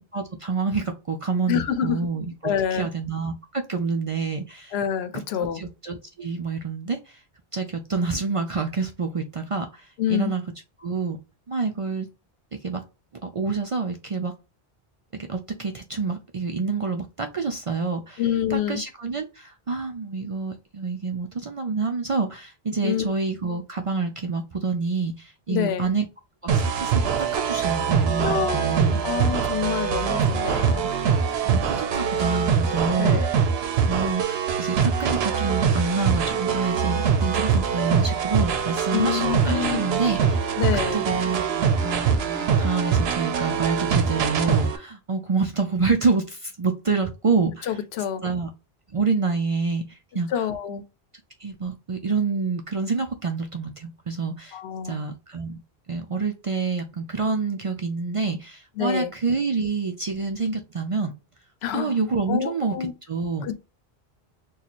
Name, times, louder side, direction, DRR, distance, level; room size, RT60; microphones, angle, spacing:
voice 1, 0.1-2.3 2.7-4.8 5.1-5.2 5.5-7.2 7.5-10.4 10.8-11.2 11.5-12.1 12.5-12.8 13.2-14.3 15.1-18.2 18.5-26.1 26.4-27.0 27.3-29.0 30.8-30.9 31.4-33.4 33.9-40.6 40.9-47.8 48.2-48.5 48.9-50.8 51.4-54.6 54.8-55.6 55.9-61.1 61.7-62.8 63.1-63.5, right 4 dB, 50° right, 0.4 m, -27 dB
voice 2, 1.5-2.1 2.4-2.9 4.7-5.6 10.0-10.3 18.2-18.8 22.8-23.1 25.5-25.9 28.2-30.9 33.0-33.3 38.9-39.8 40.6-41.0 47.7-48.2 50.3-50.8 54.5-55.0 58.8-59.1 61.6-61.9 62.3-62.9 63.4-63.6, left 9 dB, 85° left, 0.8 m, -27 dB
sound 1, 26.5-44.8, right 6 dB, 80° right, 0.9 m, -23 dB
4.0 x 2.3 x 2.9 m
omnidirectional pair, 1.0 m